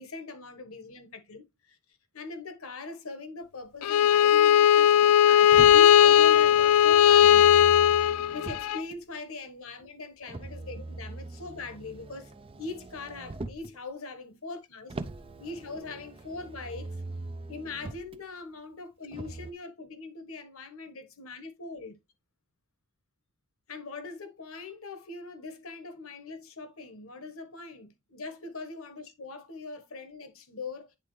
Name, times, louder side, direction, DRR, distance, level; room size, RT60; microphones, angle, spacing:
voice 1, 0.0-1.8 2.1-7.5 8.3-14.9 15.4-16.9 17.5-22.0 23.7-31.0, left 3 dB, 65° left, 1.3 m, -41 dB
Bowed string instrument, 3.8-8.8, left 10 dB, 85° left, 0.3 m, -18 dB
Motor vehicle (road), 5.5-9.0 10.3-13.8 14.9-18.2 19.1-19.5, right 2 dB, 25° right, 0.5 m, -41 dB
10.0 x 3.7 x 3.2 m
head